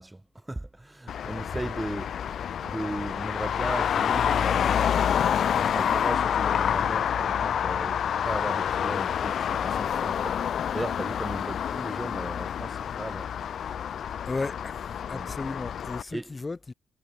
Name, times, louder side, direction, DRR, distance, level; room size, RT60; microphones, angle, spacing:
voice 1, 0.0-5.2 5.6-10.4 10.7-13.3 15.1-15.3 16.1-16.4, right 1 dB, 10° right, 6.3 m, -37 dB
Traffic noise roadway noise, 1.1-16.0, left 8 dB, 60° left, 0.4 m, -28 dB
voice 2, 14.2-16.7, left 3 dB, 20° left, 4.6 m, -35 dB
cardioid pair, 130°, 0 cm